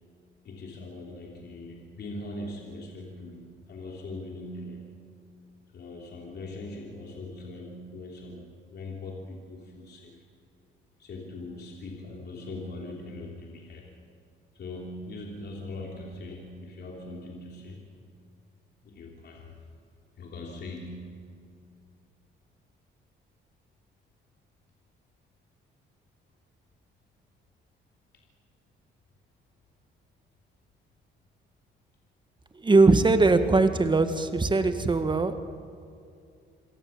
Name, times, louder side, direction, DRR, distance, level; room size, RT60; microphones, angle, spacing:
voice 1, 0.4-5.0 5.7-10.2 11.0-13.9 14.5-17.9 18.8-19.6 20.2-21.3, left 2 dB, 60° left, 0 dB, 3.2 m, -41 dB
voice 2, 32.5-35.4, right 3 dB, 25° right, 9 dB, 1.7 m, -21 dB
26.5 x 17.5 x 7.3 m, 2.5 s
cardioid pair, 90°, 20 cm